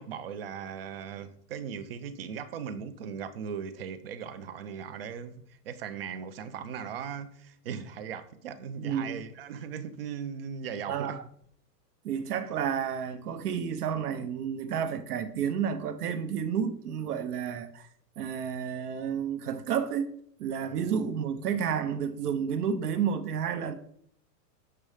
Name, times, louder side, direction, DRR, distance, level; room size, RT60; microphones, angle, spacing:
voice 1, 0.0-11.2 20.7-20.8, right 7 dB, 40° right, 0.4 m, -38 dB
voice 2, 8.8-9.2 10.9-11.2 12.0-17.9 18.2-20.1 20.4-23.8, right 7 dB, 65° right, 0.7 m, -31 dB
6.8 x 3.2 x 4.8 m
hypercardioid pair, 150°, 50 cm